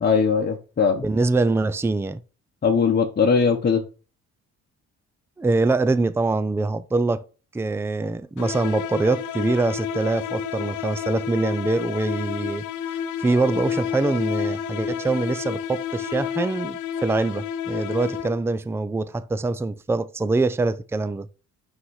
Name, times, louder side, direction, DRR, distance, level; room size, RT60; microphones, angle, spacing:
voice 1, 0.0-1.0 2.6-3.8, left 5 dB, 35° left, 1.1 m, -20 dB
voice 2, 1.0-2.2 5.4-7.2 7.5-21.3, right 3 dB, 10° right, 0.5 m, -24 dB
sound 1, 8.4-18.6, left 8 dB, 80° left, 0.7 m, -30 dB
5.9 x 5.7 x 4.8 m
cardioid pair, 90°, 30 cm